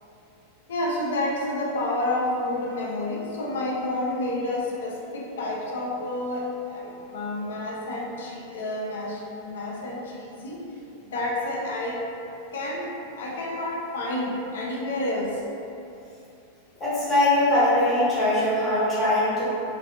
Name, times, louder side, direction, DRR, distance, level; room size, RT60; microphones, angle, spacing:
voice 1, 0.7-10.6 11.0-12.0 12.5-15.4, left 1 dB, 60° left, -3 dB, 0.4 m, -29 dB
voice 2, 16.8-19.5, left 1 dB, 20° left, -9 dB, 0.9 m, -21 dB
2.4 x 2.2 x 2.6 m, 2.8 s
figure-of-eight pair, 90°, 0 cm